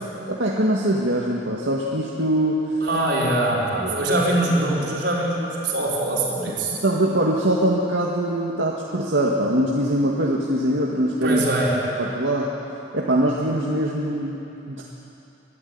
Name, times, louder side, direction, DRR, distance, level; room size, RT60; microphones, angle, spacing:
voice 1, 0.3-2.6 3.8-4.0 6.8-11.4 11.7-12.5 12.9-14.4 14.7-14.8, right 1 dB, 80° right, -3 dB, 2.0 m, -22 dB
voice 2, 2.8-6.8 11.2-11.7, right 1 dB, 65° right, -4 dB, 4.9 m, -23 dB
24.0 x 13.0 x 9.7 m, 2.8 s
head